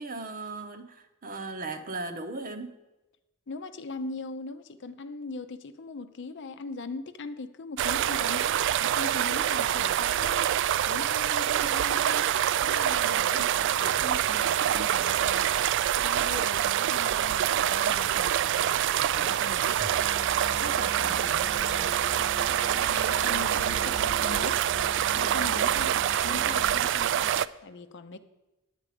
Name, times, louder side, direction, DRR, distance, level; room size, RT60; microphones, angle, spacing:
voice 1, 0.0-2.8, right 3 dB, 45° right, 8 dB, 0.9 m, -37 dB
voice 2, 3.5-10.5 10.9-12.3 12.6-13.5 13.8-15.5 16.0-18.8 19.1-19.7 20.6-21.9 22.9-24.6 25.1-25.9 26.2-28.2, left 3 dB, 60° left, 10 dB, 0.6 m, -40 dB
sound 1, 7.8-27.5, right 10 dB, 60° right, 0.3 m, -26 dB
Musical instrument, 19.8-26.9, equal, ahead, 0.5 m, -42 dB
9.7 x 9.3 x 5.0 m, 1.0 s
head